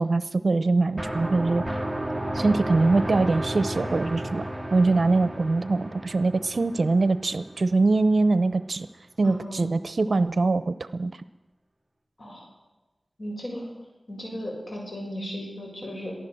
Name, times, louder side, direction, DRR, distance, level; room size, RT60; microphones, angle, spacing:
voice 1, 0.0-1.6 2.3-8.9 9.2-11.1, right 3 dB, 65° right, 14 dB, 0.8 m, -23 dB
sound 1, 1.0-7.7, right 1 dB, 5° right, 2.5 m, -32 dB
voice 2, 4.9-5.3 9.2-9.6 12.2-12.5 13.2-13.7 14.1-16.1, equal, 55° left, 0 dB, 7.2 m, -36 dB
23.0 x 15.0 x 7.8 m, 1.1 s
wide cardioid pair, 75°, 0 cm